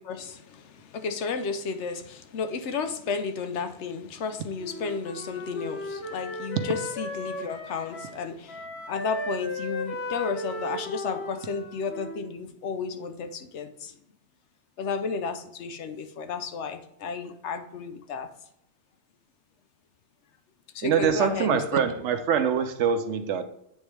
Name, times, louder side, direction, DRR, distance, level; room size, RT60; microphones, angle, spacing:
voice 1, 0.0-14.0 14.8-18.3 20.7-21.8, left 5 dB, 80° left, 9 dB, 1.0 m, -33 dB
Wind instrument woodwind instrument, 4.6-8.2 8.5-12.4, left 1 dB, 60° left, 1.2 m, -36 dB
voice 2, 20.8-23.4, right 7 dB, 80° right, 9 dB, 1.0 m, -24 dB
8.8 x 3.7 x 3.3 m, 0.77 s
omnidirectional pair, 1.2 m